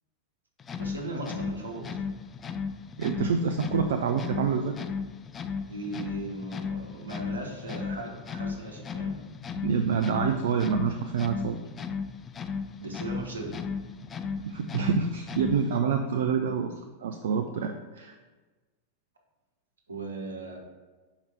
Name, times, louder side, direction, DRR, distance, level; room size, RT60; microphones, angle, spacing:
sound 1, 0.6-15.8, left 5 dB, 20° left, 0.4 m, -36 dB
voice 1, 0.8-2.1 5.7-9.2 12.8-13.6 19.9-20.6, right 2 dB, 75° right, 1 dB, 1.2 m, -37 dB
voice 2, 3.0-4.7 9.6-11.6 14.0-14.1 14.4-16.7 17.0-18.2, right 6 dB, 60° right, 6 dB, 0.4 m, -27 dB
5.6 x 4.9 x 4.4 m, 1.3 s
figure-of-eight pair, 90°, 0 cm